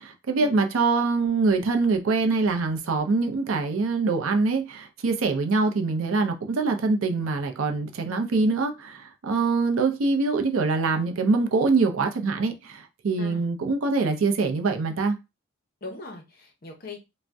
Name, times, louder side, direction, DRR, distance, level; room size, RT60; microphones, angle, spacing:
voice 1, 0.0-15.2, right 3 dB, 75° right, 0.5 m, -24 dB
voice 2, 15.8-17.0, left 3 dB, 45° left, 0.7 m, -40 dB
2.5 x 2.1 x 3.3 m
head